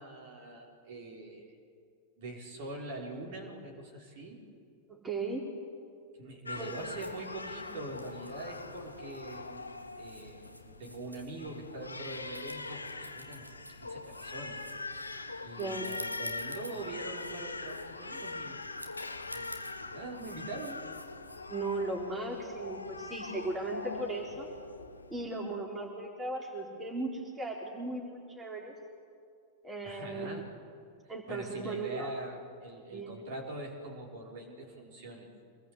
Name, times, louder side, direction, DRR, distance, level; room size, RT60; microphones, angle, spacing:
voice 1, 0.0-1.5 2.2-4.4 6.2-14.6 15.4-18.6 19.3-20.9 29.8-30.5 31.3-35.3, right 2 dB, 50° right, -1 dB, 5.0 m, -43 dB
voice 2, 4.9-5.5 6.6-6.8 15.6-15.9 21.5-24.5 25.1-28.7 29.6-30.4 31.1-32.1 32.9-33.2, right 2 dB, 15° right, -1 dB, 4.1 m, -37 dB
Crying sobbing, 6.5-25.3, left 3 dB, 80° left, 1.3 m, -42 dB
sound 1, 6.5-21.4, equal, 90° right, 1.9 m, -52 dB
26.0 x 20.0 x 8.3 m, 2.3 s
figure-of-eight pair, 90°, 0 cm